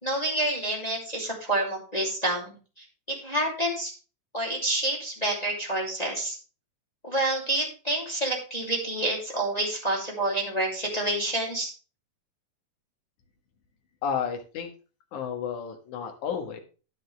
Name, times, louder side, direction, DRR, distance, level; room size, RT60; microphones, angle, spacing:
voice 1, 0.0-3.9 4.3-6.4 7.0-11.7, right 1 dB, 15° left, -2 dB, 2.6 m, -28 dB
voice 2, 14.0-14.7 15.1-16.6, left 7 dB, 70° left, 4 dB, 2.9 m, -31 dB
10.5 x 9.7 x 3.3 m, 0.34 s
omnidirectional pair, 3.7 m